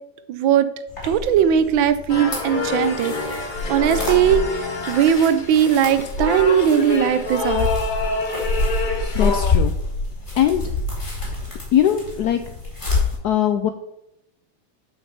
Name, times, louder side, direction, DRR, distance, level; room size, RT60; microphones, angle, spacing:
voice 1, 0.3-0.7 1.0-7.7, right 9 dB, 80° right, 12 dB, 1.4 m, -19 dB
sound 1, 0.9-13.1, left 3 dB, 25° left, 3.1 m, -27 dB
sound 2, 2.1-9.5, left 4 dB, 45° left, 0.6 m, -27 dB
voice 2, 9.1-9.7 10.4-10.6 11.7-12.4 13.2-13.7, left 10 dB, 80° left, 8 dB, 0.9 m, -20 dB
7.7 x 5.3 x 5.7 m, 0.83 s
omnidirectional pair, 2.2 m